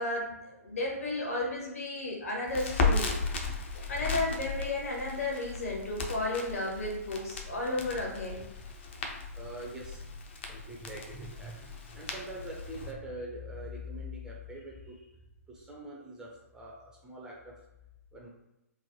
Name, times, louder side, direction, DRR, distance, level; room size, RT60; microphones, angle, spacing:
voice 1, 0.0-3.1 3.9-8.4, left 2 dB, 65° left, -2 dB, 1.0 m, -33 dB
Crackle, 2.5-12.9, left 4 dB, 45° left, 0.5 m, -35 dB
voice 2, 9.3-15.1 15.5-17.5 18.1-18.3, equal, 10° right, -3 dB, 0.4 m, -43 dB
3.1 x 2.1 x 2.8 m, 0.91 s
figure-of-eight pair, 125°, 8 cm